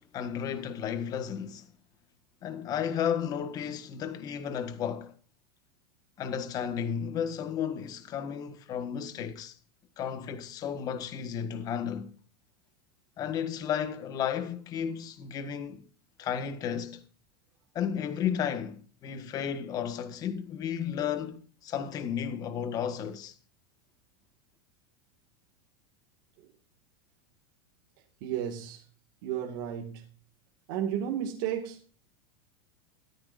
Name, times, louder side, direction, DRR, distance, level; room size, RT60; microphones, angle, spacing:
voice 1, 0.0-1.6 2.4-5.1 6.2-9.6 10.0-12.1 13.2-15.9 16.2-17.0 17.7-23.3, left 8 dB, 30° left, 1.5 m, -33 dB
voice 2, 28.2-28.8 29.2-30.0 30.7-31.8, right 9 dB, 55° right, 2.1 m, -33 dB
14.0 x 13.5 x 2.6 m
supercardioid pair, 160°, 13 cm